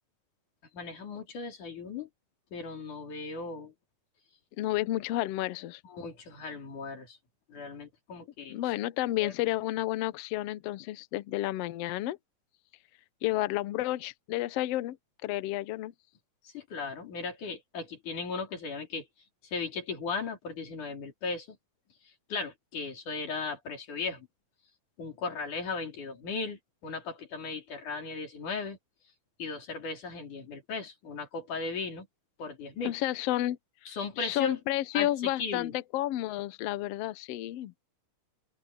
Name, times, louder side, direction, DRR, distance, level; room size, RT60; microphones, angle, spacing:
voice 1, 0.7-2.1 2.5-3.7 5.8-7.2 7.5-8.6 9.2-9.3 16.4-19.1 19.4-21.6 22.3-24.3 25.0-28.8 29.4-32.1 32.4-32.9 33.9-34.6 34.9-35.1 35.4-35.7, left 4 dB, 65° left, 5.4 m, -37 dB
voice 2, 4.6-5.8 8.5-12.2 13.2-15.0 15.2-15.9 32.8-37.7, left 15 dB, 90° left, 1.4 m, -31 dB
open air
omnidirectional pair, 3.9 m